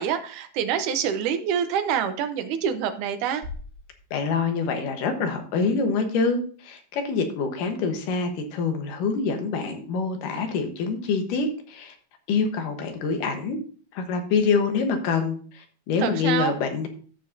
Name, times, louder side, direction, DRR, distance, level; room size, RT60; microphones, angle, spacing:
voice 1, 0.0-3.4 16.0-16.5, right 8 dB, 70° right, 8 dB, 2.0 m, -26 dB
sound 1, 3.4-5.5, left 3 dB, 35° right, 1.4 m, -43 dB
voice 2, 4.1-12.0 12.3-13.6 13.9-16.9, left 5 dB, 70° left, 6 dB, 2.6 m, -26 dB
14.0 x 6.2 x 2.7 m, 0.42 s
omnidirectional pair, 4.3 m